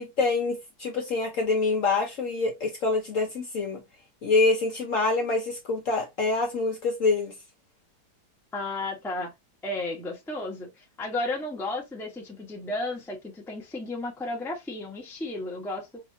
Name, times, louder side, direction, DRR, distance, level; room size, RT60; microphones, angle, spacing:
voice 1, 0.0-3.8 4.2-7.3, left 3 dB, 55° left, 1.0 m, -26 dB
voice 2, 8.5-9.3 9.6-16.0, left 2 dB, ahead, 0.6 m, -33 dB
5.2 x 2.8 x 2.7 m
omnidirectional pair, 2.1 m